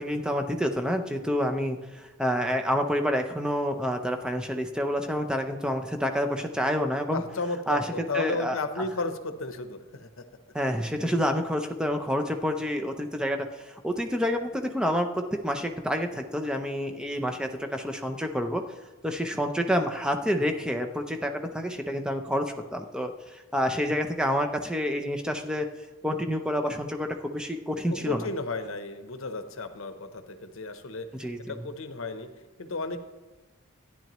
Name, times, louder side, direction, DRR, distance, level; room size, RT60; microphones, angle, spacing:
voice 1, 0.0-7.2 7.7-8.6 10.5-18.6 19.0-25.7 26.0-28.3 31.1-31.7, equal, 5° right, 4 dB, 0.5 m, -28 dB
voice 2, 7.1-10.2 27.9-31.1 31.5-32.3 32.6-33.0, left 3 dB, 65° left, 8 dB, 0.8 m, -33 dB
12.0 x 10.0 x 3.0 m, 1.2 s
head